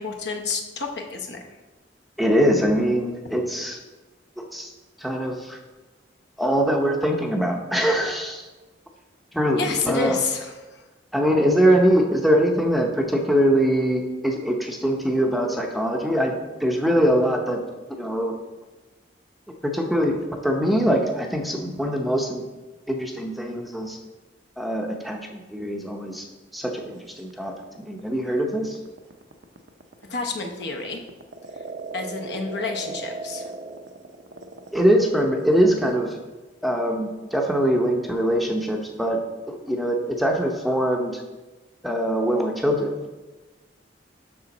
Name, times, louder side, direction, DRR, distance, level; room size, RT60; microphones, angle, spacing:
voice 1, 0.0-1.4 9.6-10.8 30.1-31.0 31.9-33.5, left 4 dB, 65° left, 3 dB, 0.9 m, -29 dB
voice 2, 2.2-3.8 4.4-4.7 5.0-5.6 6.4-8.5 9.3-10.2 11.1-17.6 18.0-18.4 19.6-22.5 22.9-24.0 24.6-26.3 26.5-28.8 34.7-36.2 36.6-39.2 39.5-41.2 41.8-43.0, equal, ahead, 1 dB, 0.6 m, -22 dB
sound 1, 27.2-36.1, right 3 dB, 75° right, 0.6 m, -38 dB
6.9 x 6.1 x 4.0 m, 1.2 s
head